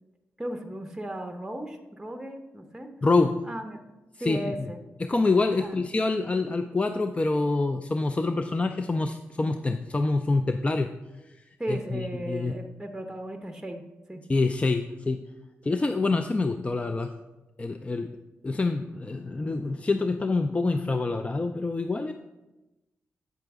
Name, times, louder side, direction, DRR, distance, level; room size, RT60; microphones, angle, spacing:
voice 1, 0.4-2.9 3.5-3.8 4.2-4.8 5.6-5.8 11.6-13.8 14.1-14.2, right 1 dB, 5° right, 5 dB, 0.8 m, -35 dB
voice 2, 3.0-3.4 4.2-4.7 5.0-10.9 11.7-12.5 14.3-15.2 15.6-17.1 17.6-18.1 18.4-22.1, left 3 dB, 25° left, 7 dB, 0.4 m, -26 dB
8.0 x 5.9 x 3.5 m, 1.1 s
cardioid pair, 65°, 5 cm